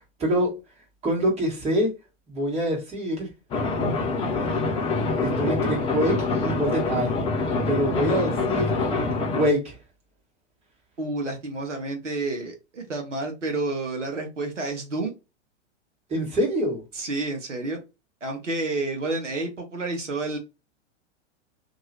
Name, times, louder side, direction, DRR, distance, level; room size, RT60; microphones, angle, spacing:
voice 1, 0.2-0.6 1.0-1.9 2.3-3.3 5.2-7.1 7.7-8.7 9.3-9.8 16.1-16.8, equal, 15° right, 1.7 m, -25 dB
sound 1, 3.5-9.5, left 3 dB, 15° left, 0.5 m, -25 dB
voice 2, 11.0-15.1 16.9-17.8 18.2-20.4, right 2 dB, 80° right, 1.1 m, -30 dB
3.0 x 2.9 x 2.7 m
figure-of-eight pair, 100°, 37 cm